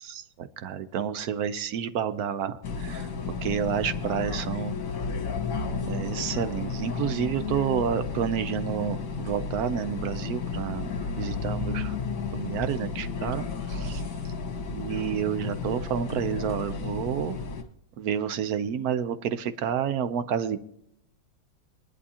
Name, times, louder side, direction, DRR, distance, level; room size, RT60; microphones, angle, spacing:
voice 1, 0.0-3.1 3.4-4.8 5.9-10.9 11.2-12.0 12.3-14.0 14.7-17.4 18.0-20.6, right 8 dB, 65° right, 12 dB, 1.0 m, -29 dB
sound 1, 2.6-17.6, left 5 dB, 60° left, 1.9 m, -33 dB
22.5 x 11.0 x 2.8 m, 0.72 s
omnidirectional pair, 2.2 m